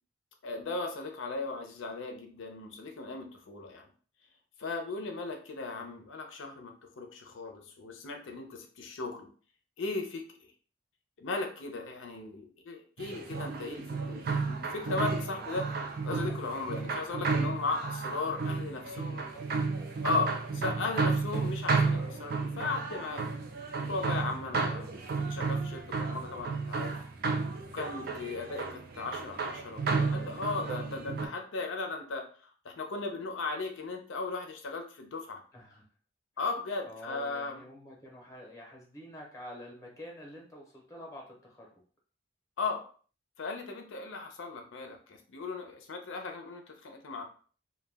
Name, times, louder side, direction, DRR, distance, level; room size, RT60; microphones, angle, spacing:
voice 1, 0.4-3.9 4.6-9.3 9.8-10.2 11.2-15.7 16.0-19.2 20.0-23.3 23.8-27.0 27.7-35.4 36.4-37.6 42.6-42.8 43.4-47.2, left 3 dB, 80° left, 4 dB, 0.5 m, -37 dB
sound 1, 13.0-31.3, right 4 dB, 50° right, 0.4 m, -32 dB
voice 2, 18.9-19.7 35.5-35.8 36.9-41.7, left 1 dB, 15° left, -1 dB, 0.7 m, -48 dB
2.2 x 2.1 x 3.3 m, 0.42 s
head